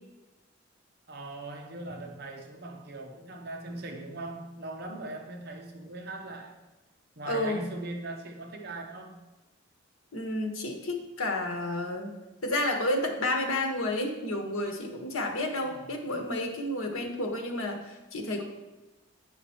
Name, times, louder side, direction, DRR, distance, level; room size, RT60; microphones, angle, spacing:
voice 1, 1.1-6.6 7.2-9.2 15.6-15.9, right 2 dB, 50° right, 3 dB, 0.7 m, -40 dB
voice 2, 7.3-7.6 10.1-12.1 12.4-18.4, left 1 dB, 80° left, 2 dB, 1.2 m, -31 dB
8.5 x 5.0 x 4.4 m, 1.1 s
head